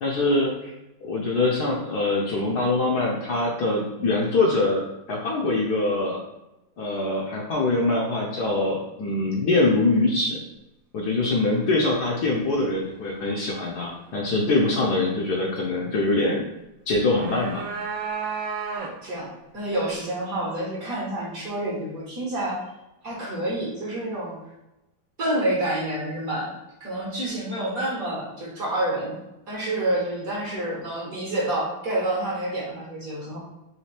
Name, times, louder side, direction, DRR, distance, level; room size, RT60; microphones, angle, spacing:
voice 1, 0.0-0.7 1.0-4.8 5.1-6.2 6.8-10.4 10.9-16.4 16.9-17.6, left 2 dB, 65° left, -2 dB, 1.1 m, -23 dB
sound 1, 16.9-19.2, right 5 dB, 75° right, 1.3 m, -32 dB
voice 2, 18.7-22.6 23.0-24.3 25.2-26.5 26.8-29.2 29.5-33.4, right 1 dB, 50° right, -4 dB, 1.4 m, -28 dB
4.3 x 3.1 x 3.2 m, 0.94 s
omnidirectional pair, 2.1 m